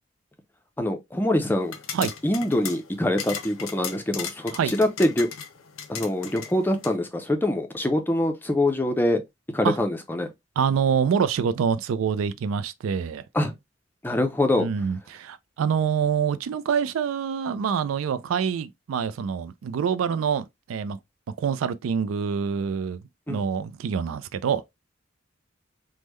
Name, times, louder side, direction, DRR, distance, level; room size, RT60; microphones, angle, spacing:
voice 1, 0.8-1.7 2.2-5.3 5.9-9.2 9.5-10.3 13.3-13.5 14.0-14.7 23.3-23.4, left 1 dB, 10° left, 0.4 m, -24 dB
sound 1, 1.6-7.0, left 8 dB, 90° left, 0.6 m, -37 dB
voice 2, 10.6-13.2 14.6-21.0 21.4-24.6, right 7 dB, 85° right, 0.3 m, -26 dB
3.5 x 2.1 x 3.0 m
head